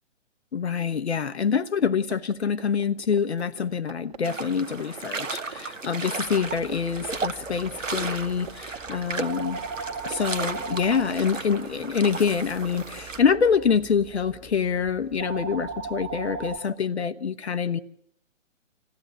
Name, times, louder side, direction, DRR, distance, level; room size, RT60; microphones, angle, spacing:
voice 1, 0.5-9.6 10.0-17.8, left 6 dB, 60° left, 1.0 m, -26 dB
sound 1, 1.7-6.4 6.7-6.8 7.0-8.8 9.0-13.8, right 7 dB, 30° right, 1.8 m, -44 dB
sound 2, 4.2-13.2, right 4 dB, 75° right, 1.5 m, -35 dB
sound 3, 6.2-16.6, right 5 dB, 10° right, 2.1 m, -39 dB
27.0 x 15.5 x 9.0 m
figure-of-eight pair, 130°, 38 cm